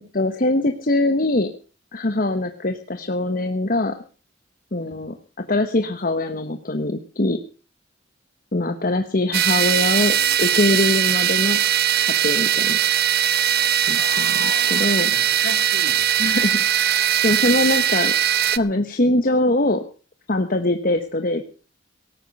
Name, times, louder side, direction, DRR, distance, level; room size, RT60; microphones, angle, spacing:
voice 1, 0.1-1.5 1.9-4.0 4.7-7.4 8.5-11.6 12.0-12.8 13.8-15.1 16.2-16.6 16.9-18.1 18.5-19.8 20.3-21.4, left 2 dB, 50° left, 7 dB, 1.2 m, -22 dB
sound 1, 9.3-18.6, right 10 dB, 55° right, 0.8 m, -20 dB
voice 2, 13.9-16.5, left 3 dB, 65° left, 7 dB, 3.0 m, -36 dB
18.0 x 9.5 x 6.7 m, 0.37 s
head